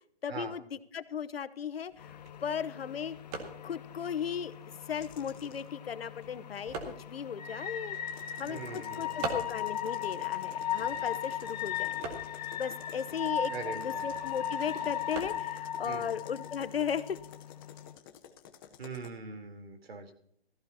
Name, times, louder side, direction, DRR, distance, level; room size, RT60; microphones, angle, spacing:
voice 1, 0.2-3.1 3.6-4.5 4.9-8.0 8.4-12.2 12.6-17.2, left 7 dB, 70° left, 15 dB, 0.9 m, -36 dB
sound 1, 1.8-17.3, right 3 dB, 20° right, 1.8 m, -46 dB
sound 2, 2.0-17.9, left 9 dB, 40° left, 1.1 m, -38 dB
sound 3, 4.9-5.7 7.9-19.1, left 9 dB, 20° left, 0.8 m, -52 dB
voice 2, 8.4-9.3 13.5-14.0 15.8-16.1 18.8-20.1, right 4 dB, 75° right, 5 dB, 3.5 m, -42 dB
17.0 x 15.0 x 2.8 m, 0.68 s
hypercardioid pair, 155°, 31 cm